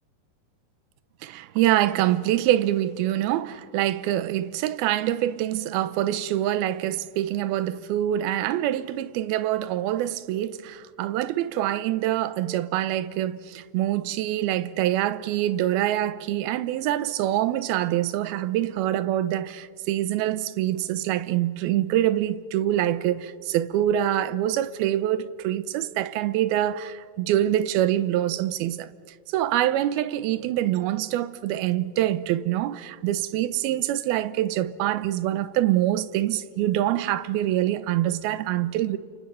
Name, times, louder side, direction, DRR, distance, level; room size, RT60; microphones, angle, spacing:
voice 1, 1.2-28.9 29.3-39.0, right 13 dB, 80° right, 2.6 m, -25 dB
29.5 x 27.0 x 5.6 m
omnidirectional pair, 4.4 m